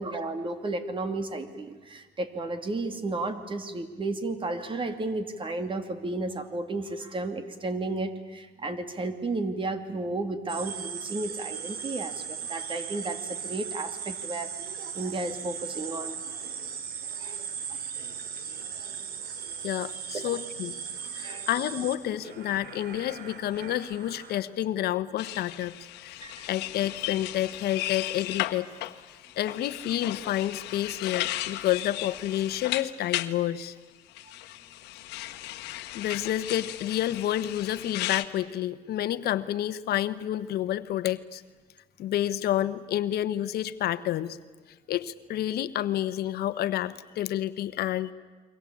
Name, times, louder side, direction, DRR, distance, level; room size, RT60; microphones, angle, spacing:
voice 1, 0.0-14.5 14.9-16.2 17.2-17.4 20.1-20.2 21.2-21.5 26.2-26.5, right 2 dB, 30° right, 9 dB, 2.5 m, -33 dB
sound 1, 10.5-24.4, right 7 dB, 65° right, 2.9 m, -38 dB
voice 2, 19.6-20.7 21.1-25.7 26.0-26.2 26.5-28.7 29.4-33.7 35.9-41.4 42.0-44.4 44.9-48.1, left 12 dB, 70° left, 12 dB, 1.1 m, -29 dB
sound 2, 25.2-33.3 34.2-38.3, left 16 dB, 90° left, 1.2 m, -35 dB
29.5 x 23.0 x 8.6 m, 1.3 s
cardioid pair, 110°, 17 cm